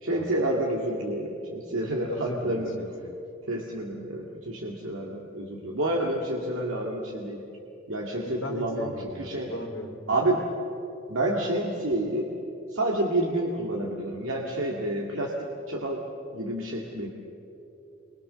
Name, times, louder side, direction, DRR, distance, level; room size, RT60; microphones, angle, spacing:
voice 1, 0.0-2.7 3.5-7.4 7.9-9.5 10.1-10.4 11.1-12.3 12.7-15.3 15.7-16.0 16.3-17.1, right 1 dB, 85° right, -2 dB, 2.2 m, -29 dB
voice 2, 2.1-3.1 8.2-9.9, left 1 dB, 70° left, 3 dB, 2.9 m, -38 dB
26.5 x 23.5 x 6.8 m, 3.0 s
head